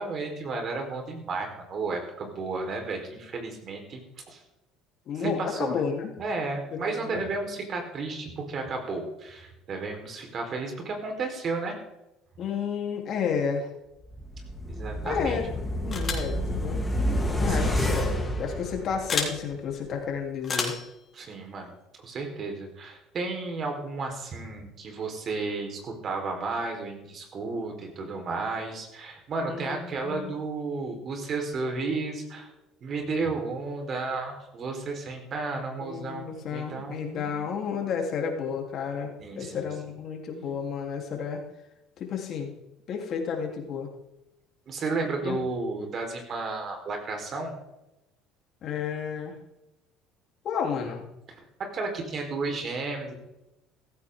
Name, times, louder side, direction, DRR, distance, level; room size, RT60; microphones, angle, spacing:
voice 1, 0.0-4.0 4.3-4.4 5.2-5.8 6.2-11.8 14.7-15.4 17.5-18.1 21.1-21.7 22.0-32.5 32.8-37.4 39.2-39.7 44.7-47.5 51.7-53.1, right 3 dB, 45° right, 3 dB, 4.5 m, -33 dB
voice 2, 5.1-6.1 6.7-7.2 12.4-13.7 15.0-15.5 15.8-16.9 17.4-20.7 29.4-30.3 35.8-41.4 42.0-42.5 42.9-43.9 45.2-45.4 48.6-49.3 50.4-51.1, left 6 dB, 55° left, 1 dB, 3.7 m, -31 dB
sound 1, 14.1-19.4 19.7-19.8, equal, 15° left, 3.4 m, -29 dB
sound 2, 15.9-16.3 17.6-17.8 19.1-19.3 20.4-20.9, left 5 dB, 35° left, 3.7 m, -30 dB
15.5 x 14.5 x 3.9 m, 0.92 s
hypercardioid pair, 75°, 0 cm